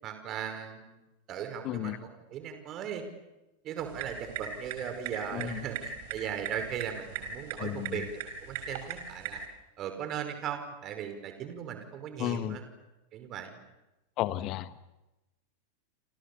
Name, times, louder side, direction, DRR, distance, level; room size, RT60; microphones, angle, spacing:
voice 1, 0.0-1.0 1.3-3.0 3.6-9.4 9.8-12.6 13.1-13.6, right 8 dB, 35° right, 8 dB, 5.4 m, -38 dB
voice 2, 1.6-2.0 5.3-5.6 7.6-8.0 12.2-12.6 14.2-14.7, left 14 dB, 40° left, 13 dB, 1.5 m, -33 dB
sound 1, 3.8-9.5, right 6 dB, 50° right, 4.7 m, -40 dB
29.5 x 27.5 x 7.1 m, 1.0 s
figure-of-eight pair, 90°, 0 cm